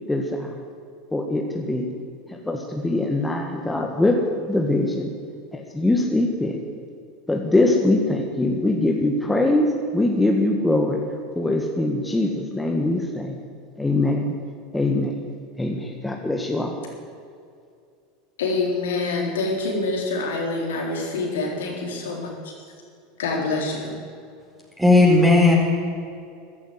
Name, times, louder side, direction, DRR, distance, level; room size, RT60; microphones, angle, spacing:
voice 1, 0.1-0.6 1.1-1.9 2.3-4.2 4.5-5.1 5.5-6.6 7.3-11.0 11.4-13.4 13.8-14.3 14.7-15.2 15.6-16.8, left 2 dB, 10° left, 1 dB, 1.9 m, -22 dB
voice 2, 18.4-22.3 23.2-24.0, left 3 dB, 75° left, 0 dB, 3.8 m, -26 dB
voice 3, 24.8-25.5, left 2 dB, 5° right, -3 dB, 4.6 m, -14 dB
14.5 x 12.0 x 8.2 m, 2.4 s
hypercardioid pair, 85°, 0 cm